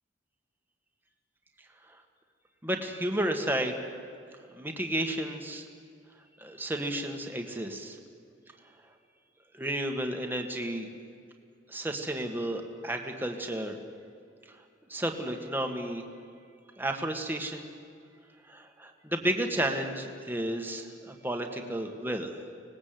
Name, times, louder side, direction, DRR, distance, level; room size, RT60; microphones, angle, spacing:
voice 1, 2.6-3.8 4.6-5.7 6.4-8.0 9.5-10.9 11.7-13.8 14.9-16.1 16.8-17.7 18.5-22.4, right 1 dB, 10° right, 3 dB, 1.9 m, -32 dB
24.5 x 19.5 x 7.9 m, 2.3 s
head